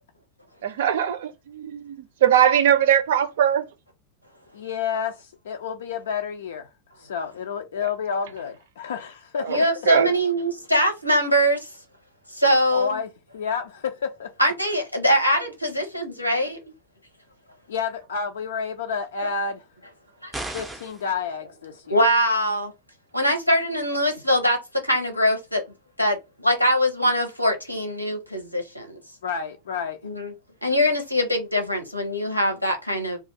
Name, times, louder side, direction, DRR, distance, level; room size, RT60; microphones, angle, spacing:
voice 1, 0.6-3.7 7.8-7.9 9.4-9.6 9.9-10.1, right 9 dB, 55° right, 0.5 m, -21 dB
voice 2, 4.5-6.7 7.0-9.7 12.7-14.3 17.7-19.6 20.5-22.1 29.2-30.0, left 6 dB, 60° left, 0.4 m, -30 dB
voice 3, 9.5-11.6 12.4-13.0 14.4-16.6 21.9-22.7 23.1-24.6 24.9-25.6 26.0-26.1 26.4-28.8 30.0-30.3 30.6-33.2, equal, 90° left, 0.9 m, -22 dB
sound 1, 20.3-21.1, right 2 dB, 10° right, 0.5 m, -34 dB
2.5 x 2.4 x 4.1 m
figure-of-eight pair, 90°, 0 cm